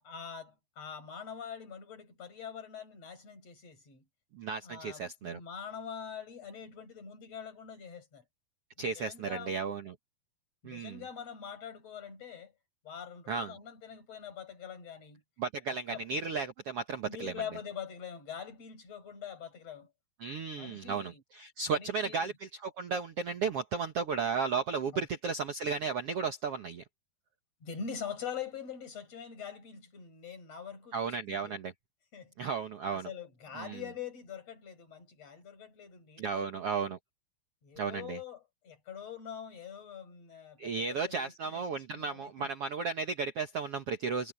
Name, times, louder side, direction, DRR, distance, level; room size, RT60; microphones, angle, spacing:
voice 1, 0.0-4.0 4.6-8.2 8.8-9.6 10.6-12.5 12.8-15.2 15.9-16.0 17.1-19.9 20.6-21.2 21.7-22.3 24.9-25.0 27.6-31.6 32.1-32.3 32.9-36.9 37.6-42.5, left 7 dB, 40° left, 7.3 m, -44 dB
voice 2, 4.3-5.4 8.8-9.9 10.6-11.0 13.3-13.5 15.4-17.3 20.2-26.8 30.9-31.7 32.4-33.1 33.6-33.8 36.2-37.0 37.8-38.2 40.6-44.3, right 5 dB, 70° right, 1.4 m, -34 dB
omnidirectional pair, 4.6 m